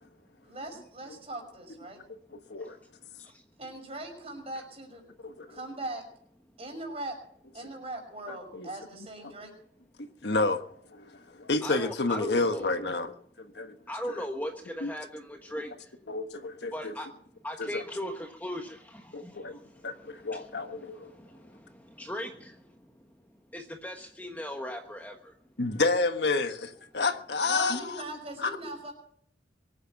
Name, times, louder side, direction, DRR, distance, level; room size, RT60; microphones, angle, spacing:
voice 1, 0.4-2.0 3.6-5.0 5.5-6.0 6.6-7.2 7.5-9.5 26.9-27.0 27.4-28.9, right 2 dB, 35° right, 3 dB, 5.9 m, -40 dB
voice 2, 5.2-5.6 8.3-8.7 10.2-10.6 10.9-13.1 13.5-13.7 14.1-14.2 14.8-14.9 16.1-16.9 17.6-17.8 19.1-21.1 25.6-28.0 28.4-28.6, left 3 dB, 65° left, 8 dB, 1.4 m, -30 dB
voice 3, 11.6-12.7 13.9-15.7 16.7-17.1 17.4-19.6 20.3-20.5 21.2-21.6 22.0-22.5 23.5-25.3, equal, 10° left, 3 dB, 1.3 m, -38 dB
23.5 x 9.6 x 5.9 m, 0.66 s
head